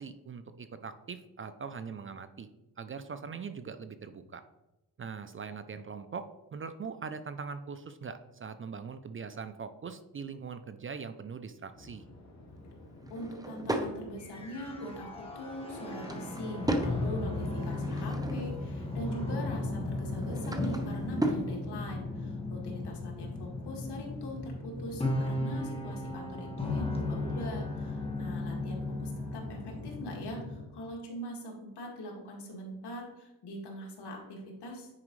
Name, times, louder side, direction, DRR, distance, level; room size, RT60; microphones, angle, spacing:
voice 1, 0.0-2.5 2.8-4.4 5.0-12.0, right 5 dB, 30° right, 11 dB, 0.4 m, -41 dB
sound 1, 11.7-29.9, left 2 dB, 40° left, 1.9 m, -53 dB
Drawer open or close / Wood, 13.0-13.9 15.6-17.0 17.5-18.7 20.0-21.5, right 1 dB, 10° right, 0.8 m, -35 dB
voice 2, 13.1-15.1 15.3-34.9, equal, 70° left, 0 dB, 2.1 m, -42 dB
sound 2, 14.2-30.6, left 2 dB, 15° left, 1.6 m, -36 dB
9.6 x 4.9 x 3.2 m, 1.0 s
cardioid pair, 95°, 41 cm